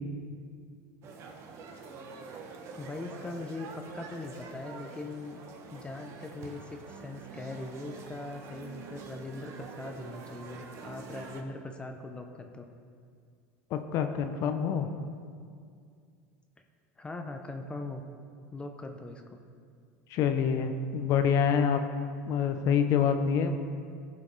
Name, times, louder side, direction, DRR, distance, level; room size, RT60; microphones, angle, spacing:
sound 1, 1.0-11.4, right 4 dB, 45° right, 1.0 m, -46 dB
voice 1, 2.8-5.4 5.7-12.7 17.0-18.0 18.5-19.4, left 2 dB, 15° left, 4 dB, 0.6 m, -41 dB
voice 2, 13.7-14.9 20.1-21.8 22.3-23.5, left 7 dB, 50° left, 7 dB, 0.6 m, -26 dB
15.5 x 5.6 x 3.2 m, 2.2 s
supercardioid pair, 115°, 7 cm